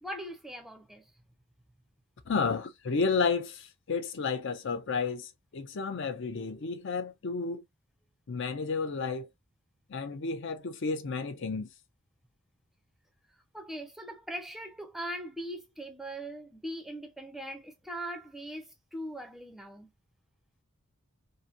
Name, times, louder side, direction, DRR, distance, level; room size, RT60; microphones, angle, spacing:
voice 1, 0.0-1.1 13.5-19.9, right 1 dB, ahead, 0.5 m, -40 dB
voice 2, 2.3-7.6 8.3-9.3 9.9-11.7, left 4 dB, 60° left, 0.5 m, -31 dB
2.8 x 2.6 x 2.4 m
head